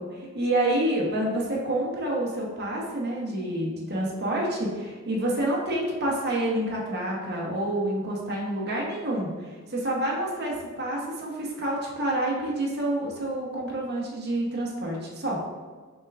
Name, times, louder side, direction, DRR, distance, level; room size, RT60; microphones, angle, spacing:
voice 1, 0.0-15.4, right 1 dB, 50° right, -3 dB, 0.9 m, -28 dB
6.4 x 2.4 x 3.4 m, 1.4 s
head